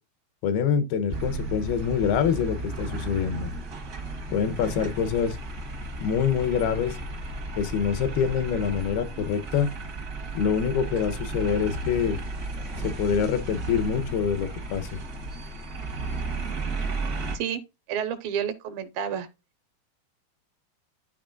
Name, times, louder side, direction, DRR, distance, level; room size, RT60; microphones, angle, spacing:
voice 1, 0.4-3.5 4.3-5.4 6.0-7.0 7.6-9.7 10.3-12.2 12.8-14.9, left 7 dB, 85° left, 2.9 m, -25 dB
sound 1, 1.1-17.4, right 2 dB, 55° right, 1.0 m, -34 dB
voice 2, 17.9-19.3, right 8 dB, 75° right, 2.5 m, -30 dB
12.0 x 4.5 x 2.5 m
omnidirectional pair, 4.4 m